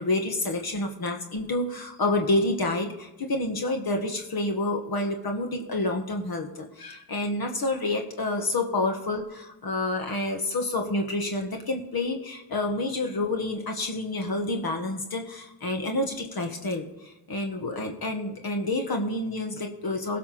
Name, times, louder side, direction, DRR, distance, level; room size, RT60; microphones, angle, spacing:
voice 1, 0.0-20.2, left 2 dB, 60° left, 3 dB, 1.7 m, -28 dB
17.5 x 5.9 x 5.9 m, 0.98 s
cardioid pair, 60°, 41 cm